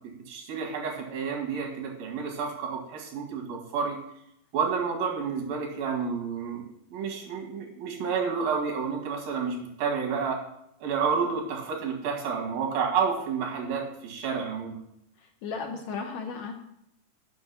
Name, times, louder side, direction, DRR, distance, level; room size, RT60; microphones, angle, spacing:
voice 1, 0.3-4.0 4.5-6.7 6.9-10.4 10.8-14.8, right 6 dB, 85° right, 0 dB, 3.7 m, -30 dB
voice 2, 15.4-16.5, left 5 dB, 75° left, 3 dB, 1.8 m, -34 dB
7.9 x 5.9 x 7.0 m, 0.77 s
omnidirectional pair, 3.9 m